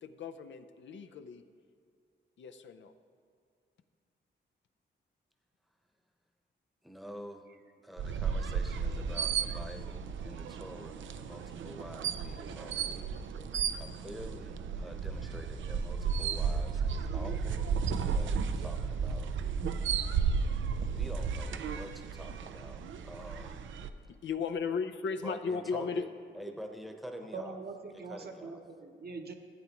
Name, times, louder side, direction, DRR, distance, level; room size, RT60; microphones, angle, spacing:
voice 1, 0.0-1.4 2.4-2.9 24.1-26.1, left 5 dB, 75° left, 8 dB, 0.5 m, -36 dB
voice 2, 6.8-7.5 7.8-13.0 13.8-17.7 18.1-19.3 20.9-23.6 25.2-26.1 26.3-27.6 27.9-28.6, equal, ahead, 4 dB, 0.9 m, -47 dB
sound 1, 8.0-23.9, right 6 dB, 90° right, 0.4 m, -34 dB
voice 3, 12.9-13.4 27.3-29.3, right 4 dB, 55° right, 3 dB, 1.0 m, -44 dB
15.0 x 8.3 x 3.0 m, 2.3 s
cardioid pair, 80°, 19 cm